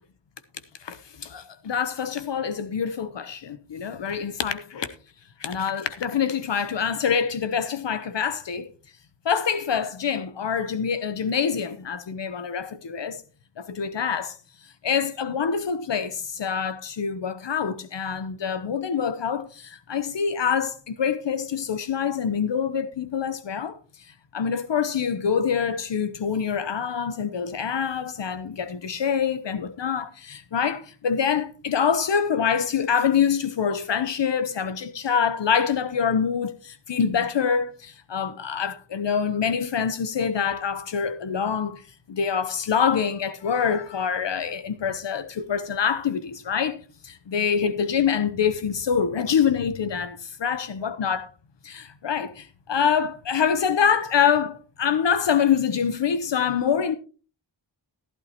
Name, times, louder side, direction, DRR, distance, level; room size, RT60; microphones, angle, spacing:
voice 1, 0.8-4.9 5.4-8.7 9.2-13.2 13.6-14.4 14.8-23.8 24.3-41.8 42.1-46.8 47.0-51.3 51.6-56.9, left 7 dB, 75° left, 1.0 m, -25 dB
15.5 x 11.5 x 2.9 m
wide cardioid pair, 95°, 44 cm